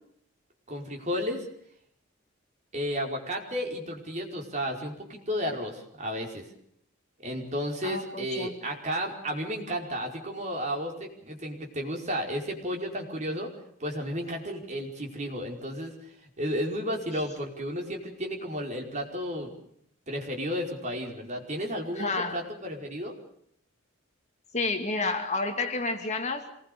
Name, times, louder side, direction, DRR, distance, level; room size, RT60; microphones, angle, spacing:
voice 1, 0.7-1.4 2.7-6.4 7.2-13.5 13.8-19.6 20.1-23.1, equal, 35° right, 1 dB, 5.2 m, -33 dB
voice 2, 7.8-8.6 21.9-22.4 24.5-26.5, left 3 dB, 35° left, 5 dB, 2.5 m, -30 dB
26.5 x 21.0 x 6.9 m, 0.68 s
head